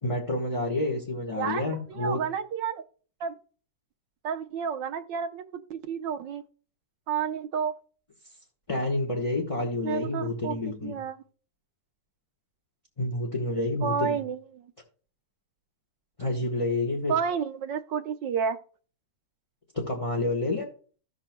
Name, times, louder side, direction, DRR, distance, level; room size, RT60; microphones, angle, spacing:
voice 1, 0.0-2.2 8.7-11.0 13.0-14.2 16.2-17.1 19.7-20.7, left 2 dB, 20° left, 1.1 m, -29 dB
voice 2, 1.4-2.8 3.2-3.4 4.2-6.4 7.1-7.7 9.8-11.2 13.8-14.6 17.1-18.6, right 7 dB, 85° right, 1.5 m, -31 dB
16.0 x 5.9 x 2.2 m
omnidirectional pair, 1.9 m